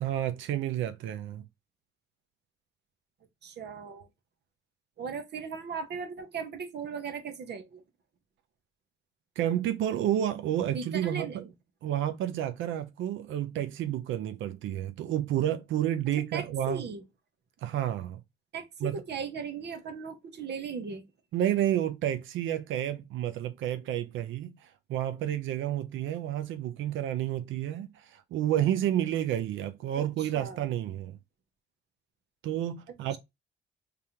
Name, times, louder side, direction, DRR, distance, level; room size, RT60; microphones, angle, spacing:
voice 1, 0.0-1.4 9.4-11.5 11.8-16.8 17.6-18.2 18.8-19.0 21.3-31.2 32.4-33.2, right 11 dB, 75° right, 0.5 m, -30 dB
voice 2, 3.4-4.1 5.0-7.8 10.7-11.5 16.3-17.0 18.5-21.0 29.9-30.6, right 5 dB, 60° right, 0.9 m, -37 dB
3.5 x 3.3 x 2.8 m
cardioid pair, 90°, 20 cm